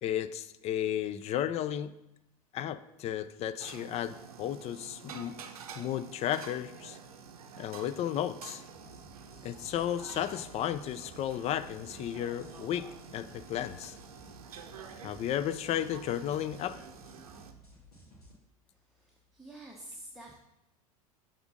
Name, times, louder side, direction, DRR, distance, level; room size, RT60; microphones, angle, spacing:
voice 1, 0.0-1.9 2.5-5.4 5.8-7.0 7.6-8.6 9.4-13.9 15.0-16.8, left 10 dB, 35° left, 13 dB, 0.4 m, -33 dB
sound 1, 3.6-17.5, right 6 dB, 75° right, 0.6 m, -49 dB
sound 2, 8.7-18.3, equal, 85° left, 1.6 m, -56 dB
voice 2, 18.9-20.4, right 1 dB, ahead, -2 dB, 0.9 m, -48 dB
7.1 x 3.7 x 5.2 m, 0.87 s
figure-of-eight pair, 75°, 19 cm